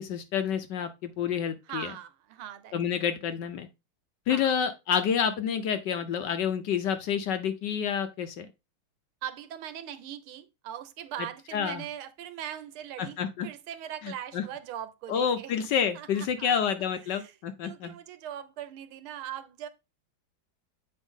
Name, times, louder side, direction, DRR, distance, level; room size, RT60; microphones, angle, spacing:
voice 1, 0.0-1.9 2.7-3.7 4.3-8.5 11.5-11.8 13.0-13.5 14.0-14.4 15.1-17.9, left 7 dB, 65° left, 1.2 m, -29 dB
voice 2, 1.7-2.7 4.3-4.6 9.2-13.2 13.4-15.5 15.9-16.7 17.1-17.3 17.6-19.7, right 10 dB, 80° right, 1.6 m, -40 dB
8.0 x 4.7 x 3.6 m
omnidirectional pair, 2.3 m